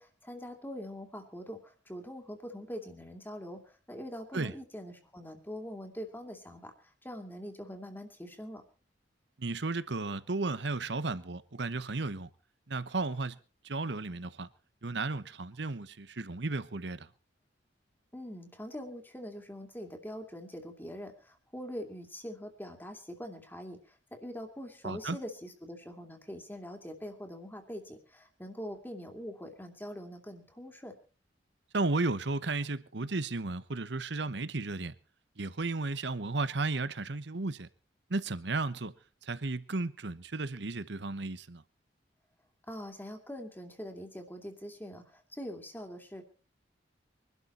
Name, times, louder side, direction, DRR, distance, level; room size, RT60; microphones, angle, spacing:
voice 1, 0.0-8.6 18.1-31.0 42.7-46.2, equal, 10° left, 2.5 m, -43 dB
voice 2, 9.4-12.3 12.7-13.4 13.6-14.5 14.8-17.1 24.8-25.2 31.7-34.9 35.4-37.7 38.1-38.9 39.2-41.6, right 3 dB, 70° right, 1.0 m, -34 dB
23.0 x 12.0 x 4.3 m
head